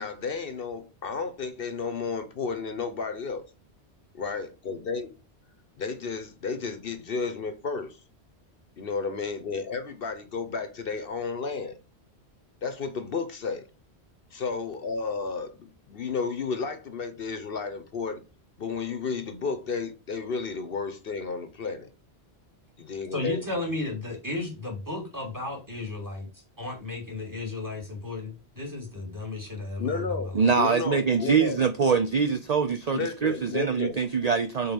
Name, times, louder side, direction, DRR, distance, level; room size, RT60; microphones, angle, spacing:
voice 1, 0.0-3.4 4.1-5.1 5.8-8.0 8.8-11.8 12.6-13.6 14.3-18.2 18.6-21.9 22.8-23.6 29.8-31.6 32.9-34.0, left 5 dB, 60° left, 1.0 m, -32 dB
voice 2, 23.1-30.5, left 2 dB, 15° right, 2.1 m, -34 dB
voice 3, 30.3-34.7, right 5 dB, 45° right, 0.6 m, -24 dB
5.4 x 4.2 x 5.9 m
omnidirectional pair, 1.1 m